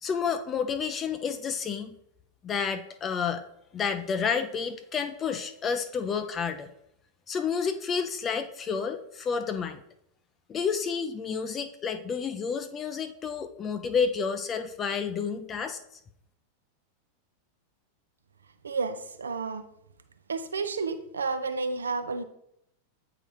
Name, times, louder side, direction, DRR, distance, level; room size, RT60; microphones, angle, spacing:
voice 1, 0.0-1.9 2.4-3.4 3.7-6.7 7.3-9.8 10.5-15.8, left 6 dB, 25° left, 9 dB, 0.4 m, -30 dB
voice 2, 18.6-19.6 20.3-22.2, right 4 dB, 70° right, 10 dB, 0.6 m, -31 dB
8.8 x 3.9 x 3.2 m, 0.75 s
figure-of-eight pair, 90°, 0 cm